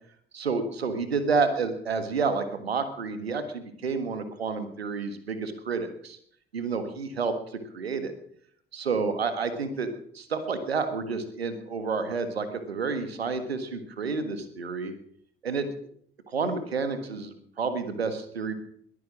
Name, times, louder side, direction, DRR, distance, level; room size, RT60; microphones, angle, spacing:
voice 1, 0.3-6.2 6.5-7.3 7.7-8.1 8.7-9.9 10.1-14.9 15.4-15.7 16.3-18.5, right 4 dB, 80° right, 10 dB, 1.6 m, -29 dB
21.5 x 9.5 x 6.2 m, 0.64 s
figure-of-eight pair, 50°, 30 cm